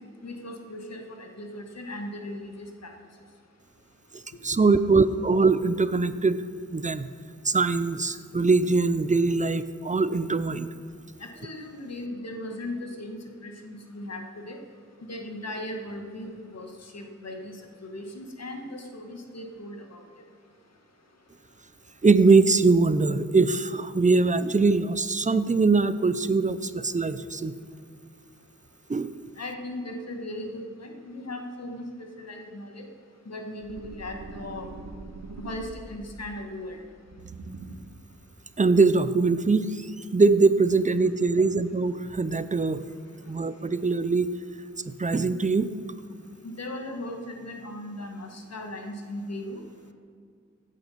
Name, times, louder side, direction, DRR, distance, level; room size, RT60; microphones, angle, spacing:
voice 1, 0.2-2.9 11.4-13.2 13.4-14.6 15.0-20.0 29.4-31.8 32.2-32.9 33.2-34.7 35.4-36.8 46.6-49.6, left 1 dB, 60° left, 3 dB, 1.7 m, -38 dB
voice 2, 4.4-6.4 6.7-7.1 7.4-10.7 22.0-27.5 28.9-29.1 38.6-39.8 40.1-42.8 43.3-44.3 44.9-45.7, right 3 dB, 25° right, 13 dB, 0.6 m, -22 dB
sound 1, 33.6-36.1 37.0-38.0, right 2 dB, 80° right, 1.5 m, -42 dB
16.0 x 9.3 x 5.8 m, 2.2 s
wide cardioid pair, 85°, 29 cm